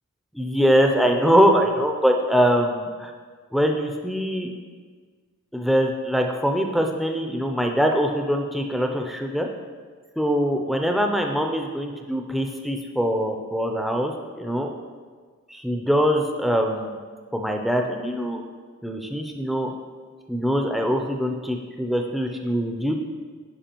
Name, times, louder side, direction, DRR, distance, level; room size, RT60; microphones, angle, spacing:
voice 1, 0.3-3.1 3.5-4.5 5.5-9.5 10.2-14.7 15.5-17.0 17.3-18.4 18.8-19.7 20.3-22.9, equal, ahead, 3 dB, 0.4 m, -23 dB
10.5 x 4.7 x 2.9 m, 1.6 s
head